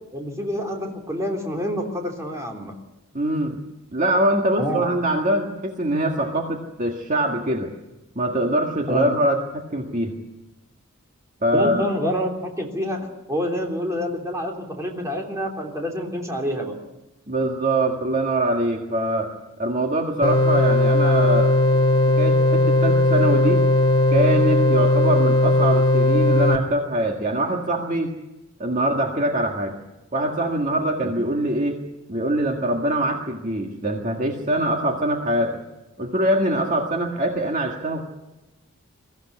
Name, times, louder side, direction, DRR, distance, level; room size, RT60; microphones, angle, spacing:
voice 1, 0.1-2.7 4.6-4.8 8.9-9.1 11.5-13.0 13.3-16.8 31.0-31.1, equal, 15° right, 0 dB, 3.3 m, -27 dB
voice 2, 3.1-3.6 3.9-7.7 8.2-10.2 11.4-11.9 17.3-19.3 19.6-21.8 22.2-23.6 24.1-28.1 28.6-29.8 30.1-31.8 32.1-35.6 36.0-38.1, right 1 dB, 35° right, 1 dB, 1.8 m, -23 dB
sound 1, 20.2-26.6, left 1 dB, 20° left, 2.2 m, -18 dB
22.5 x 15.0 x 9.7 m, 0.99 s
head